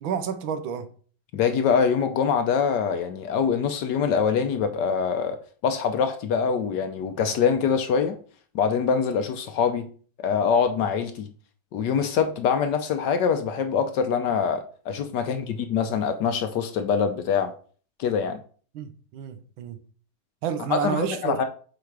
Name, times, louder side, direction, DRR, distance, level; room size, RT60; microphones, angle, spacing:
voice 1, 0.0-0.9 18.7-19.8 20.4-21.4, right 7 dB, 75° right, 1.5 m, -29 dB
voice 2, 1.3-8.2 8.5-9.9 10.2-11.3 11.7-17.5 18.0-18.4 20.7-21.4, left 6 dB, 70° left, 1.1 m, -24 dB
7.1 x 4.0 x 4.7 m
omnidirectional pair, 2.2 m